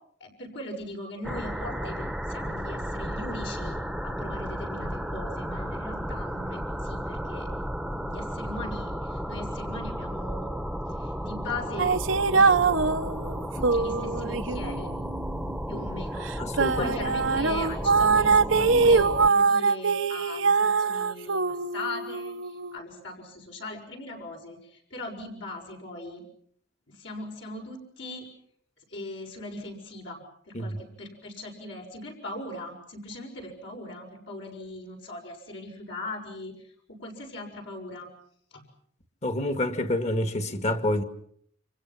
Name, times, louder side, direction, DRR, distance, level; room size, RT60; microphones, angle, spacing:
voice 1, 0.2-7.5 7.9-10.5 10.9-12.9 13.5-14.9 15.7-16.4 16.7-26.2 26.9-28.3 28.9-38.1 38.5-38.7, left 2 dB, 65° left, 6.6 m, -39 dB
sound 1, 1.2-19.3, equal, ahead, 1.2 m, -33 dB
sound 2, 11.8-15.8 16.3-22.8, right 4 dB, 75° right, 1.0 m, -23 dB
voice 2, 16.4-16.9 30.5-30.8 39.2-41.0, left 1 dB, 35° left, 2.1 m, -27 dB
29.5 x 26.5 x 6.0 m
head